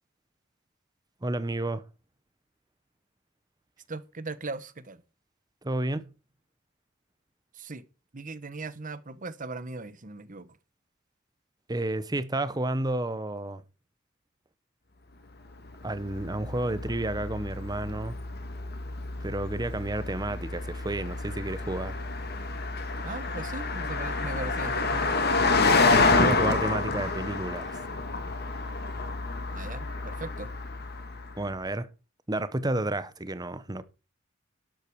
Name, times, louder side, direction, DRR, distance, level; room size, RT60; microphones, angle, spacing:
voice 1, 1.2-1.8 5.6-6.1 11.7-13.6 15.8-18.2 19.2-21.9 26.0-27.8 31.4-31.9 32.3-33.8, right 1 dB, 20° right, 0.9 m, -31 dB
voice 2, 3.9-5.0 7.6-7.8 8.1-10.5 23.0-25.2 29.5-30.5, right 3 dB, 40° right, 1.1 m, -39 dB
Car passing by, 15.6-31.4, left 3 dB, 50° left, 2.3 m, -28 dB
12.0 x 8.5 x 4.7 m
head